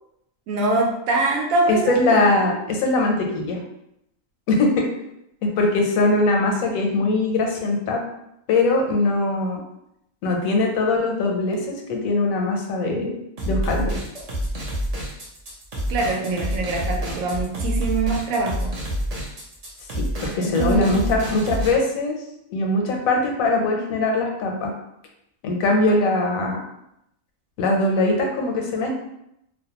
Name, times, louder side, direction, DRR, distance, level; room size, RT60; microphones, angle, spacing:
voice 1, 0.5-1.9 15.9-18.7 20.4-21.1, right 2 dB, 80° right, 0 dB, 1.0 m, -23 dB
voice 2, 1.7-3.6 4.5-4.9 5.4-8.0 8.5-9.6 10.2-13.2 13.5-14.0 19.9-22.2 22.5-24.7 25.4-26.6 27.6-28.9, left 2 dB, 85° left, 1 dB, 1.0 m, -21 dB
sound 1, 13.4-21.7, equal, 50° right, 0.4 m, -27 dB
2.5 x 2.0 x 2.8 m, 0.80 s
omnidirectional pair, 1.4 m